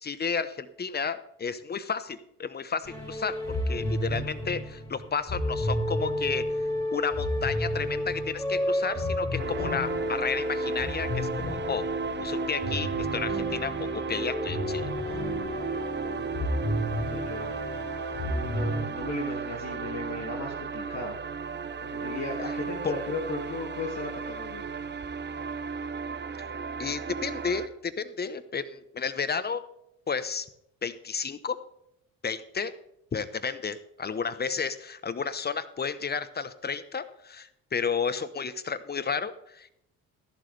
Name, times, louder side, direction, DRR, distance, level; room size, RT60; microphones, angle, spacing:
voice 1, 0.0-6.5 6.9-11.8 12.2-14.9 26.8-29.6 30.1-30.5 30.8-31.6 32.2-32.7 33.1-39.7, left 5 dB, 25° left, 14 dB, 1.0 m, -32 dB
sound 1, 2.8-18.8, left 1 dB, 10° left, 5.4 m, -31 dB
voice 2, 9.3-9.8 16.0-21.2 21.8-24.6, left 3 dB, 50° left, -1 dB, 2.3 m, -37 dB
sound 2, 9.4-27.7, right 6 dB, 30° right, 1.1 m, -35 dB
14.0 x 11.5 x 3.3 m, 0.77 s
hypercardioid pair, 55°, 36 cm